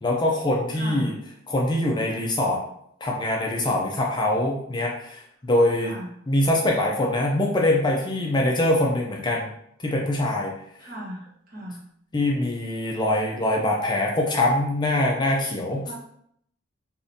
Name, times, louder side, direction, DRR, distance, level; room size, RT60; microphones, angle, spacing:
voice 1, 0.0-1.1 1.5-2.6 3.0-5.9 6.3-9.5 9.8-10.5 12.1-15.8, left 1 dB, 20° left, -1 dB, 0.4 m, -23 dB
voice 2, 0.7-1.1 5.8-6.1 10.8-11.8 15.8-15.9, right 1 dB, 50° right, -6 dB, 1.3 m, -37 dB
3.5 x 2.5 x 2.6 m, 0.70 s
head